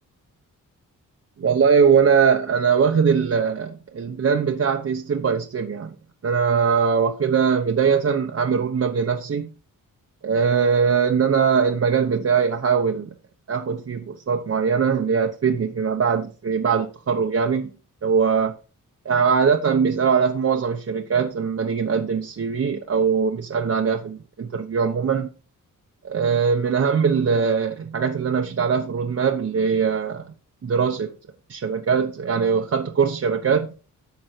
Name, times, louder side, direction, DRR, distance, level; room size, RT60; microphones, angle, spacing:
voice 1, 1.4-5.9 6.2-9.5 10.2-13.1 13.5-17.7 18.0-18.5 19.0-25.3 26.0-30.2 30.6-31.1 31.5-33.7, right 6 dB, 45° right, 1.0 m, -21 dB
11.5 x 7.1 x 4.6 m
wide cardioid pair, 120°, 33 cm